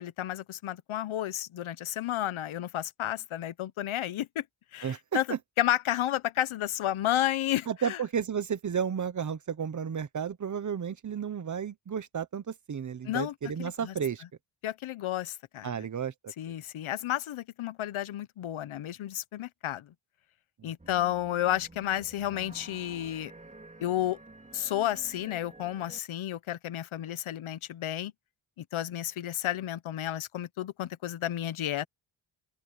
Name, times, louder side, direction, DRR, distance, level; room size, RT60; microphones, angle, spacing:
voice 1, 0.0-4.4 4.7-8.0 13.0-13.9 14.6-15.9 16.4-19.9 20.6-23.3 23.8-24.2 24.5-28.1 28.6-31.8, left 12 dB, 80° left, 0.9 m, -32 dB
voice 2, 7.7-14.2 15.6-16.3 20.6-20.7, right 7 dB, 40° right, 0.9 m, -32 dB
sound 1, 20.8-26.0, right 2 dB, 15° right, 3.9 m, -51 dB
open air
wide cardioid pair, 160°, 48 cm